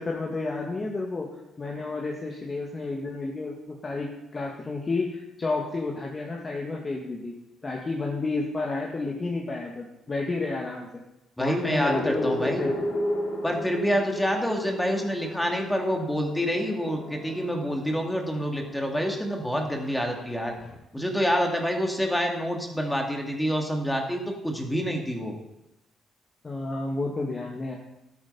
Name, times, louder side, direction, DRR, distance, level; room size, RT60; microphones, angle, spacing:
voice 1, 0.0-1.3 1.6-7.3 7.6-11.0 11.4-12.7 26.4-27.7, left 3 dB, 30° left, -1 dB, 2.0 m, -31 dB
voice 2, 11.4-12.7 13.4-20.5 20.9-25.3, equal, 5° left, 2 dB, 2.3 m, -27 dB
sound 1, 11.8-20.7, equal, 50° left, 4.6 m, -34 dB
12.5 x 9.2 x 5.6 m, 0.92 s
cardioid pair, 90°, 0 cm